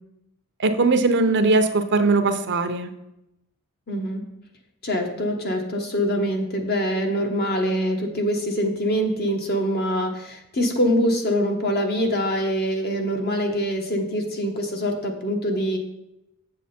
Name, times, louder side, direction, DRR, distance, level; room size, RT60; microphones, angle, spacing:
voice 1, 0.6-2.9, right 3 dB, 50° right, 8 dB, 0.7 m, -20 dB
voice 2, 3.9-4.2 4.8-15.8, equal, 45° left, 3 dB, 1.3 m, -24 dB
7.6 x 7.4 x 4.3 m, 0.87 s
head